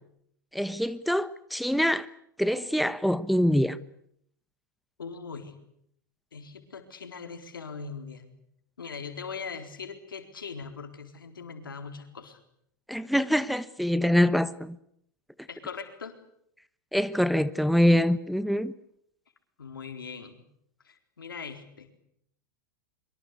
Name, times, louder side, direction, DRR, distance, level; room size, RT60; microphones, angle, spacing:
voice 1, 0.5-2.1 2.4-3.8 12.9-14.8 16.9-18.7, equal, ahead, 1.2 m, -24 dB
voice 2, 5.0-5.6 6.3-8.3 8.8-12.4 15.5-16.2 19.6-20.5 20.8-22.0, left 5 dB, 90° left, 4.2 m, -40 dB
24.5 x 24.5 x 8.4 m
hypercardioid pair, 100°, 11 cm